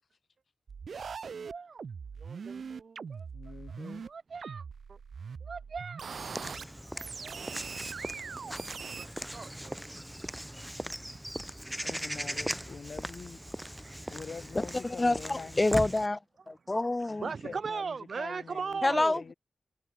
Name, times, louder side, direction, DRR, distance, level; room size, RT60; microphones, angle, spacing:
sound 1, 0.7-4.1 4.4-6.6 7.0-9.1, right 6 dB, 80° right, 1.9 m, -41 dB
voice 1, 1.4-1.8 2.2-3.3 3.8-5.0 5.4-6.1 6.8-7.6 9.0-9.8 13.8-14.1 15.3-15.4 17.2-19.2, right 5 dB, 65° right, 4.5 m, -39 dB
voice 2, 3.3-4.0 11.8-13.7 14.1-15.7 17.1-19.3, left 5 dB, 65° left, 7.0 m, -45 dB
Walk footsteps / Bird vocalization bird call bird song, 6.1-16.1, equal, 5° right, 4.7 m, -39 dB
voice 3, 14.8-16.2 16.5-17.3 18.8-19.2, left 2 dB, 25° left, 1.0 m, -27 dB
wide cardioid pair, 105°, 0 cm